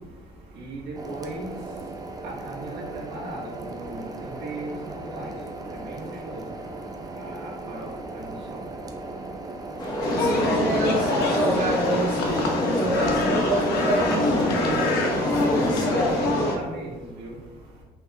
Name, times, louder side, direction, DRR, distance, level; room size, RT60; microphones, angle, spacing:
voice 1, 0.6-1.5 2.2-5.3 5.7-6.4 7.2-7.9 8.1-8.6 16.0-17.3, right 2 dB, 80° right, -4 dB, 1.4 m, -37 dB
sound 1, 0.9-15.8, right 2 dB, 20° right, 0.5 m, -37 dB
sound 2, 9.8-16.5, left 1 dB, 25° left, 1.0 m, -30 dB
sound 3, 10.0-16.6, left 2 dB, 75° left, 0.8 m, -24 dB
voice 2, 10.1-15.0, right 2 dB, 55° right, -4 dB, 0.7 m, -27 dB
5.4 x 3.1 x 2.3 m, 1.2 s
cardioid pair, 110°, 17 cm